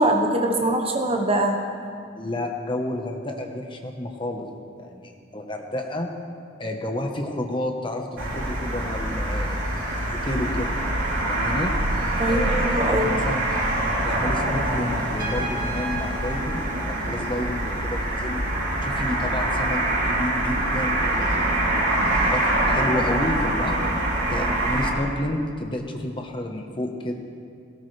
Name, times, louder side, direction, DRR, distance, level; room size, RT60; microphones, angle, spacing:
voice 1, 0.0-1.6 12.2-13.1, right 1 dB, 30° right, 3 dB, 1.2 m, -22 dB
voice 2, 2.2-4.5 4.8-6.1 6.6-10.7 11.2-11.7 12.2-13.5 14.0-18.4 18.8-21.0 21.6-23.8 24.3-27.1, left 1 dB, 25° left, 2 dB, 1.1 m, -30 dB
sound 1, 8.2-24.9, right 1 dB, 85° right, 3.5 m, -25 dB
Trumpet, 15.2-17.8, right 2 dB, 50° right, 2.0 m, -36 dB
17.5 x 17.5 x 3.4 m, 2.3 s
head